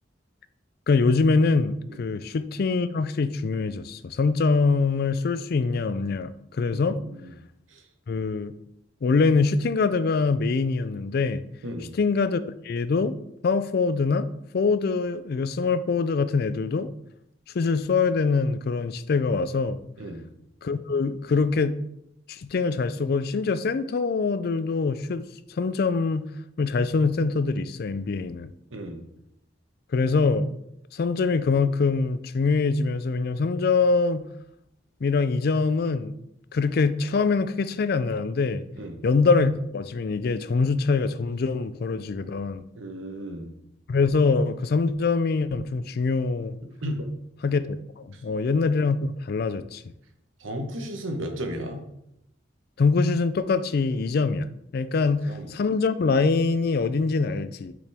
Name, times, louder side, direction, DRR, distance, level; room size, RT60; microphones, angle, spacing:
voice 1, 0.9-7.0 8.1-8.5 9.0-11.4 12.0-13.1 13.4-14.3 14.5-16.9 17.5-19.8 20.6-21.8 22.3-25.3 25.6-26.3 26.6-28.5 29.9-30.5 30.9-34.2 35.0-36.2 36.5-38.6 39.0-42.6 43.9-46.6 47.4-47.8 48.0-49.8 52.8-54.5 54.7-57.7, left 4 dB, 50° left, 13 dB, 0.4 m, -24 dB
voice 2, 6.7-7.4 7.7-7.8 11.6-11.9 20.0-20.2 28.7-29.0 38.8-39.0 42.7-43.5 46.8-47.1 48.1-48.2 50.4-51.8 55.2-55.5, equal, 85° right, 4 dB, 1.1 m, -34 dB
6.8 x 5.1 x 3.5 m, 0.79 s
head